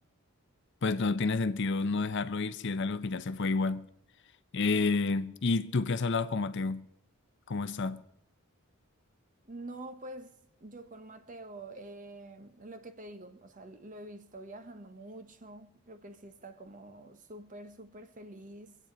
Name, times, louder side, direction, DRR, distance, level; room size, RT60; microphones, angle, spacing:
voice 1, 0.8-3.9 4.5-6.9 7.5-8.0, left 3 dB, 55° left, 0.6 m, -30 dB
voice 2, 9.4-18.8, right 1 dB, 40° right, 1.1 m, -47 dB
23.5 x 8.7 x 5.1 m
head